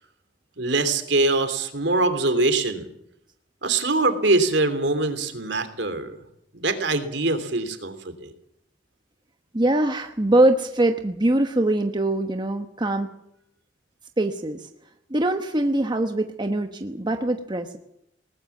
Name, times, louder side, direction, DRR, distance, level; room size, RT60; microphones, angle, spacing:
voice 1, 0.6-2.9 3.6-6.2 6.5-8.3, right 2 dB, 65° right, 9 dB, 3.2 m, -23 dB
voice 2, 9.5-13.1 14.2-14.7 15.1-17.8, right 1 dB, 25° right, 6 dB, 1.1 m, -23 dB
20.5 x 19.5 x 7.3 m, 0.77 s
head